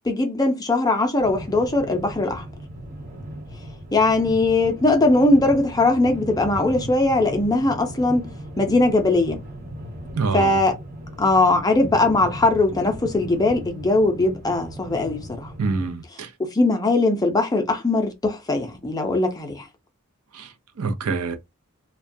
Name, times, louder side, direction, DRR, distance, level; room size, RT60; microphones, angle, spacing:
voice 1, 0.1-2.4 3.9-8.3 8.6-9.4 10.3-10.7 11.2-15.5 16.4-19.7, left 2 dB, 15° left, 0.5 m, -20 dB
sound 1, 1.2-15.9, equal, 35° right, 1.1 m, -37 dB
voice 2, 10.1-10.6 15.6-16.3 20.3-21.4, right 4 dB, 90° right, 0.6 m, -26 dB
2.2 x 2.2 x 2.6 m
head